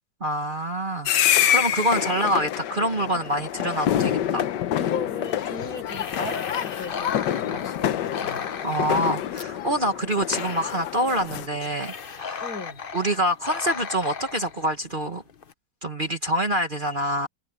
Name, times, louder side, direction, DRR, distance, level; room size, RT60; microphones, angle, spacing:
voice 1, 0.2-4.4 8.6-12.4 12.9-15.2 15.8-17.3, equal, 30° right, 1.5 m, -26 dB
sound 1, 1.1-11.5, left 11 dB, 90° left, 1.5 m, -27 dB
voice 2, 4.8-8.5 12.4-12.8, left 3 dB, 60° left, 5.4 m, -37 dB
sound 2, 5.2-15.5, left 6 dB, 40° left, 1.0 m, -36 dB
omnidirectional pair, 1.8 m